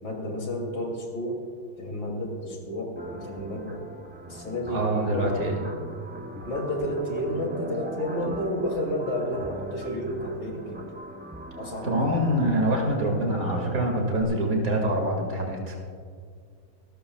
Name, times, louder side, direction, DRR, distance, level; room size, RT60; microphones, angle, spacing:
voice 1, 0.0-1.4 1.8-3.8 4.3-5.3 6.4-10.8 11.6-12.0, equal, 85° left, 0 dB, 3.4 m, -31 dB
sound 1, 3.0-14.2, right 1 dB, 15° right, 0.4 m, -41 dB
voice 2, 4.7-5.6 11.8-15.7, right 1 dB, 60° right, 1 dB, 2.7 m, -25 dB
25.0 x 14.0 x 2.4 m, 2.1 s
omnidirectional pair, 1.7 m